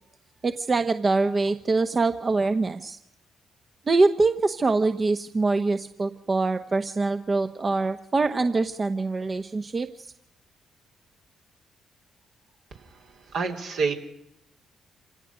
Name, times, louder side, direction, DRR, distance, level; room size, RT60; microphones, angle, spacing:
voice 1, 0.4-3.0 3.9-10.1, right 3 dB, 40° right, 8 dB, 1.1 m, -24 dB
voice 2, 12.7-13.9, right 4 dB, 70° right, 1 dB, 3.3 m, -29 dB
27.0 x 17.5 x 6.3 m, 0.80 s
hypercardioid pair, 45°, 0 cm